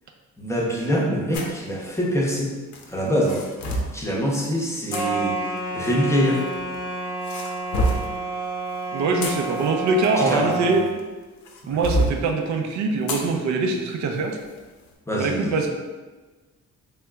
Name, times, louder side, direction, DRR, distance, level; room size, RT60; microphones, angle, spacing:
voice 1, 0.4-2.5 2.9-3.4 3.9-6.4 10.2-10.8 11.6-11.8 15.1-15.5, equal, 10° left, -2 dB, 0.6 m, -24 dB
sound 1, 1.3-1.6 2.7-4.0 4.9-5.0 6.2-6.8 7.2-8.1 8.9-11.0 11.5-12.2 13.1-13.3 13.7-13.8 14.4-14.6, equal, 70° left, 0.6 m, -27 dB
sound 2, 4.9-10.9, right 2 dB, 15° right, 0.9 m, -29 dB
voice 2, 8.9-10.8 11.6-14.4 15.1-15.7, right 3 dB, 70° right, 3 dB, 0.5 m, -23 dB
3.2 x 2.8 x 2.3 m, 1.3 s
cardioid pair, 90°, 30 cm